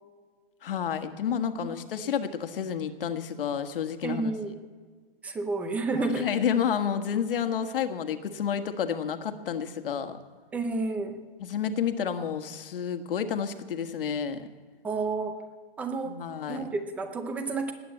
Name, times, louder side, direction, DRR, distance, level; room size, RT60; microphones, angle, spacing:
voice 1, 0.6-4.3 6.0-10.2 11.4-14.5 16.0-16.7, left 8 dB, 60° left, 8 dB, 1.6 m, -30 dB
voice 2, 4.0-4.6 5.2-6.3 10.5-11.2 14.8-15.4 15.8-16.2 16.5-17.7, right 3 dB, 5° right, 7 dB, 0.5 m, -30 dB
19.5 x 8.8 x 7.9 m, 1.5 s
hypercardioid pair, 165°, 31 cm